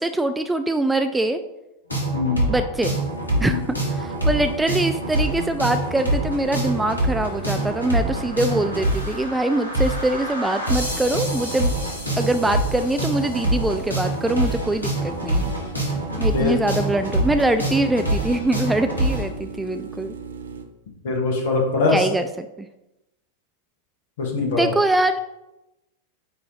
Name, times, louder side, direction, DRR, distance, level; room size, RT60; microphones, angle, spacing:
voice 1, 0.0-1.4 2.5-3.0 3.4-3.6 4.0-11.7 12.2-15.5 16.2-20.1 21.9-22.7 24.6-25.2, right 1 dB, 5° right, 8 dB, 0.3 m, -23 dB
sound 1, 1.9-19.2, right 1 dB, 80° left, 1.7 m, -25 dB
voice 2, 2.1-2.5 3.4-3.6 16.3-16.6 21.0-22.1 24.2-24.7, left 3 dB, 55° left, 0 dB, 1.7 m, -22 dB
sound 2, 2.9-20.6, right 5 dB, 70° right, 0.7 m, -39 dB
8.9 x 3.1 x 4.0 m, 0.96 s
figure-of-eight pair, 90°, 0 cm